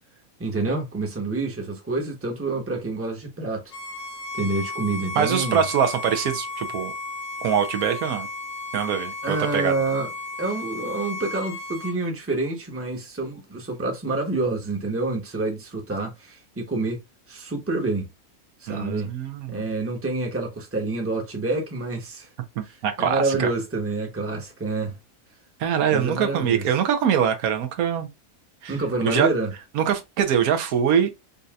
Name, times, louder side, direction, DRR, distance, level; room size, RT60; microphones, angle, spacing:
voice 1, 0.4-3.7 4.3-5.6 9.2-10.1 10.4-17.0 17.3-18.1 18.6-19.1 19.5-22.3 22.6-25.0 25.9-26.6 28.7-29.5, right 3 dB, 10° right, 0.9 m, -27 dB
Bowed string instrument, 3.7-12.0, left 2 dB, 70° left, 1.2 m, -34 dB
voice 2, 5.2-6.9 7.4-8.3 8.7-9.7 18.7-19.6 22.6-23.5 25.6-28.1 28.6-28.8 29.0-29.3 29.7-31.1, right 8 dB, 80° right, 1.2 m, -23 dB
5.3 x 2.7 x 2.3 m
omnidirectional pair, 1.5 m